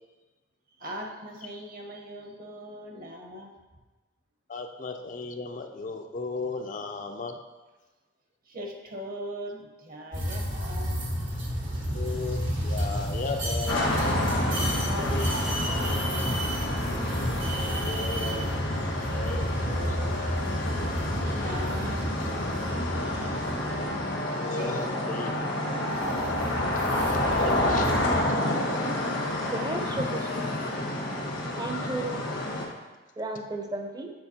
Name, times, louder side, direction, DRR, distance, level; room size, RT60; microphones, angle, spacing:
voice 1, 0.8-3.6 8.5-11.1 14.2-16.8 19.6-20.6 21.1-23.3 24.5-25.6 30.7-31.4, equal, 50° right, 1 dB, 0.9 m, -41 dB
voice 2, 4.5-7.4 11.9-13.9 17.6-18.5 19.1-19.5 24.4-25.3 27.3-27.9 30.0-30.1, left 3 dB, 45° left, 5 dB, 0.4 m, -35 dB
sound 1, 10.1-24.2 25.9-28.2, equal, 80° right, 1.4 m, -31 dB
sound 2, 13.7-32.7, left 1 dB, 85° left, 1.3 m, -29 dB
voice 3, 29.5-30.6 31.6-32.4 33.2-34.1, right 2 dB, 20° right, 4 dB, 0.6 m, -34 dB
7.9 x 4.3 x 2.8 m, 1.2 s
head